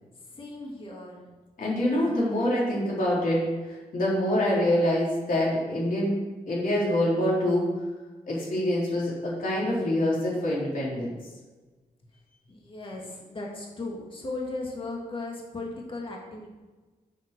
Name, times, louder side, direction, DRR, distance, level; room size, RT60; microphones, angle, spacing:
voice 1, 0.3-1.2 12.5-16.5, left 2 dB, 35° left, -2 dB, 2.2 m, -37 dB
voice 2, 1.6-7.8 8.3-11.2, left 1 dB, 60° left, -5 dB, 3.5 m, -26 dB
7.9 x 7.2 x 6.7 m, 1.2 s
wide cardioid pair, 150°, 16 cm